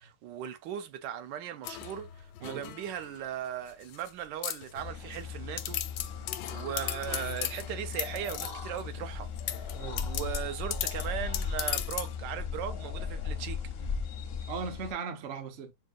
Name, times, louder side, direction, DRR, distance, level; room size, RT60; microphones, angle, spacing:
voice 1, 0.0-5.8 6.5-9.7 10.0-13.6, right 10 dB, 85° right, 1.3 m, -38 dB
sound 1, 1.6-3.2 3.7-4.1 4.4-5.2 5.6-8.8 9.4-12.2, left 12 dB, 80° left, 1.2 m, -37 dB
sound 2, 4.8-14.9, left 6 dB, 60° left, 0.6 m, -37 dB
voice 2, 9.7-10.1 13.3-13.4 13.8-14.0 14.5-15.7, right 5 dB, 55° right, 0.7 m, -38 dB
6.2 x 2.4 x 2.5 m
omnidirectional pair, 1.9 m